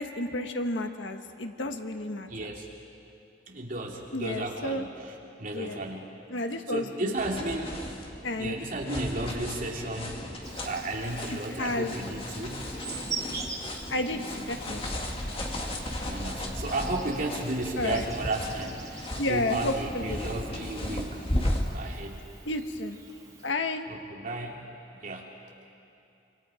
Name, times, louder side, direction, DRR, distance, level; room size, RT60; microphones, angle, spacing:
voice 1, 0.0-2.3 4.1-4.8 5.5-5.8 6.3-7.1 8.2-8.5 11.6-12.0 13.9-14.8 17.8-18.0 19.2-20.2 22.4-23.0 23.4-23.9, left 2 dB, 80° left, 6 dB, 1.5 m, -31 dB
voice 2, 2.2-2.7 3.5-5.1 5.4-6.1 6.7-7.8 8.4-10.2 10.6-12.7 16.0-21.3 21.7-22.2 23.9-24.6 25.0-25.3, right 2 dB, 50° right, -1 dB, 2.9 m, -33 dB
sound 1, 7.2-21.6, left 1 dB, 30° left, 2.2 m, -35 dB
Insect, 10.4-23.5, right 5 dB, 20° right, 2.5 m, -44 dB
26.0 x 26.0 x 5.1 m, 2.7 s
head